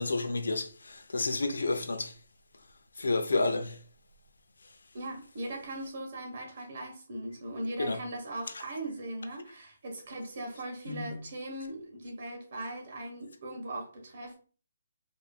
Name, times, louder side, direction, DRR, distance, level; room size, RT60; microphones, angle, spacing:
voice 1, 0.0-2.1 3.0-3.8 7.8-8.0 10.9-11.1, left 3 dB, 85° left, 0.6 m, -30 dB
voice 2, 4.9-14.4, right 1 dB, 50° right, 1.2 m, -39 dB
4.4 x 2.6 x 2.4 m
hypercardioid pair, 155°, 0 cm